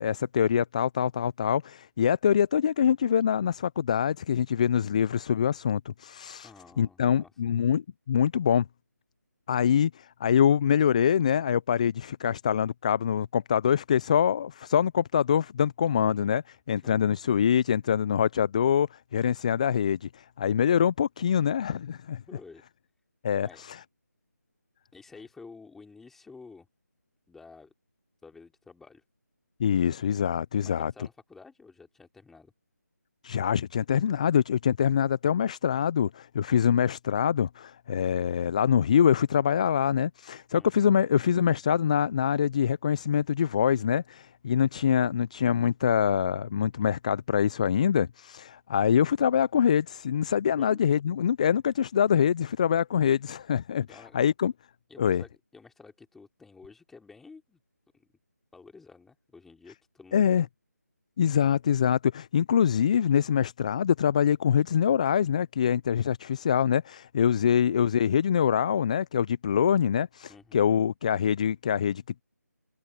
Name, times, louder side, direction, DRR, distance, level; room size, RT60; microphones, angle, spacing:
voice 1, 0.0-6.5 6.8-8.7 9.5-22.2 23.2-23.8 29.6-30.9 33.2-53.9 54.1-54.5 55.0-55.2 60.1-60.5 61.2-72.2, left 8 dB, 25° left, 0.5 m, -24 dB
voice 2, 6.4-7.3 16.8-16.9 22.3-22.6 23.4-23.6 24.9-26.7 27.3-27.7 28.2-29.0 30.6-32.5 40.6-40.8 50.6-50.8 53.9-54.2 54.9-57.6 57.9-58.1 58.5-60.5 70.3-70.7, left 4 dB, 5° left, 3.5 m, -51 dB
figure-of-eight pair, 160°, 9 cm